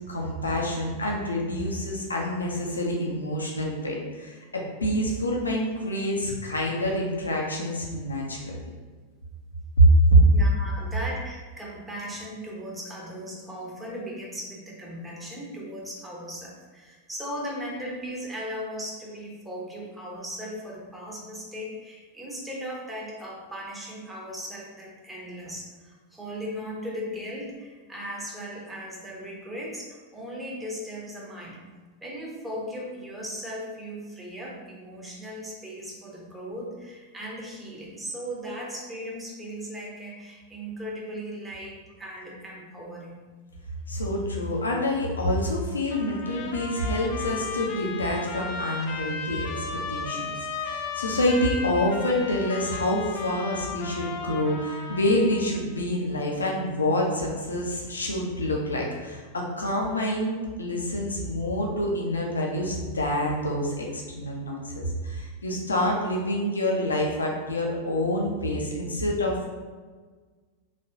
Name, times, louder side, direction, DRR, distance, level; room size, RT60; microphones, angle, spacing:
voice 1, 0.1-8.6 9.8-10.2 43.9-69.5, equal, 75° left, -1 dB, 0.7 m, -26 dB
voice 2, 10.3-31.6 32.0-43.2, equal, 5° right, -4 dB, 0.9 m, -37 dB
Trumpet, 45.9-55.6, left 5 dB, 40° left, 0.5 m, -35 dB
4.2 x 3.0 x 2.8 m, 1.4 s
figure-of-eight pair, 90°, 0 cm